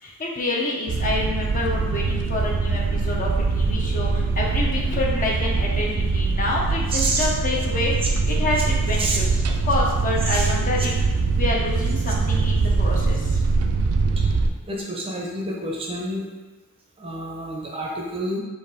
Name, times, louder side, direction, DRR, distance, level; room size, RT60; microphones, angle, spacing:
voice 1, 0.0-7.9 8.3-11.1 11.4-13.4, left 2 dB, 40° left, -2 dB, 0.7 m, -27 dB
sound 1, 0.9-14.5, right 4 dB, 80° right, 0.4 m, -23 dB
voice 2, 6.9-7.3 9.0-9.2 10.2-10.5 14.7-16.3 17.0-18.4, right 1 dB, 25° right, -2 dB, 0.6 m, -28 dB
4.2 x 2.9 x 4.1 m, 1.2 s
head